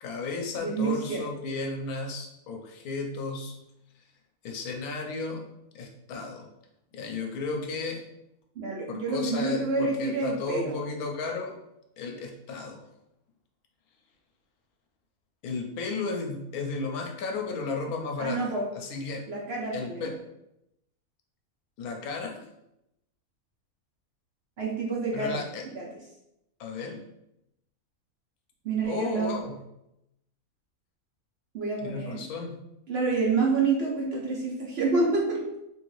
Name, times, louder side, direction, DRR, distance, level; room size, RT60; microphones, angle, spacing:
voice 1, 0.0-3.6 4.0-4.1 4.4-5.4 5.7-6.5 6.9-8.0 8.9-11.6 12.0-12.8 15.4-19.3 19.7-20.2 21.8-22.5 25.1-25.6 26.6-27.0 28.9-29.6 31.8-32.6, left 4 dB, 90° left, 2 dB, 1.1 m, -34 dB
voice 2, 0.6-1.2 8.6-10.7 18.2-18.6 19.3-20.1 24.6-25.4 25.7-25.9 28.6-29.3 31.5-32.2 32.9-35.4, right 4 dB, 60° right, -2 dB, 0.7 m, -28 dB
3.5 x 2.5 x 3.1 m, 0.85 s
omnidirectional pair, 1.5 m